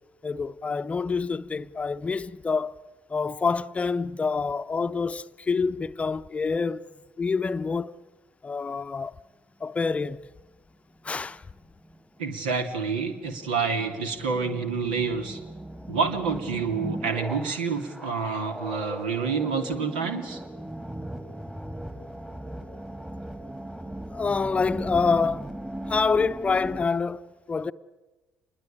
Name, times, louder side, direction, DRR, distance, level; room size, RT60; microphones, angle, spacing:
voice 1, 0.2-2.7 3.1-6.9 7.2-8.0 8.4-9.2 9.6-10.2 11.0-11.4 24.1-25.5 25.9-27.7, left 4 dB, 25° left, 0.8 m, -27 dB
sound 1, 10.4-26.9, right 1 dB, 10° right, 2.3 m, -38 dB
voice 2, 12.2-15.4 15.9-20.4, right 5 dB, 75° right, 2.6 m, -28 dB
27.0 x 21.0 x 8.7 m
figure-of-eight pair, 50°, 5 cm